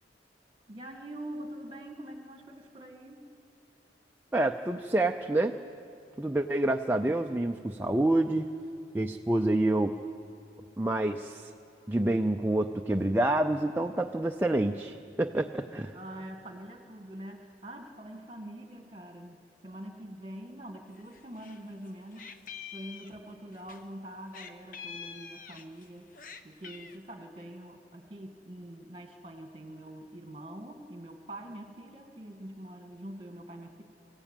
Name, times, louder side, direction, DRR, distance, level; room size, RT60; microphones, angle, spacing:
voice 1, 0.7-3.3 15.9-22.3 22.7-26.1 26.4-33.8, right 1 dB, 30° right, 4 dB, 1.8 m, -44 dB
voice 2, 4.3-5.6 6.2-8.5 8.9-9.9 10.8-11.5 11.9-15.9, right 1 dB, 10° right, 4 dB, 0.4 m, -27 dB
Meow, 21.0-21.6 21.9-23.8 24.3-25.9 26.1-27.0, left 7 dB, 45° left, 0.9 m, -45 dB
23.5 x 15.0 x 9.0 m, 2.9 s
head